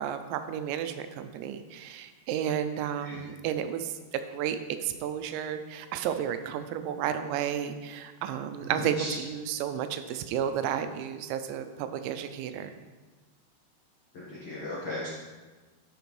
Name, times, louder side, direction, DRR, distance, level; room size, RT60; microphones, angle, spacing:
voice 1, 0.0-3.9 4.3-12.8, right 9 dB, 90° right, 9 dB, 2.9 m, -32 dB
voice 2, 8.6-9.1 14.3-15.1, left 1 dB, 70° left, -7 dB, 1.3 m, -36 dB
11.5 x 5.9 x 3.2 m, 1.3 s
omnidirectional pair, 5.0 m